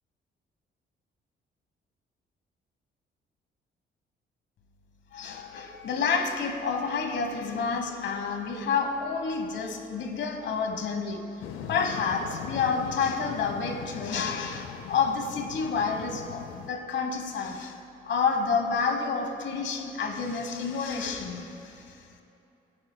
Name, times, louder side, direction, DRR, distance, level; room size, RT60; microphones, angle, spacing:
voice 1, 5.1-17.8 18.0-22.1, left 5 dB, 65° left, 5 dB, 1.2 m, -29 dB
sound 1, 11.4-16.7, left 8 dB, 85° left, 0.7 m, -40 dB
18.5 x 9.5 x 2.2 m, 2.8 s
cardioid pair, 90°, 20 cm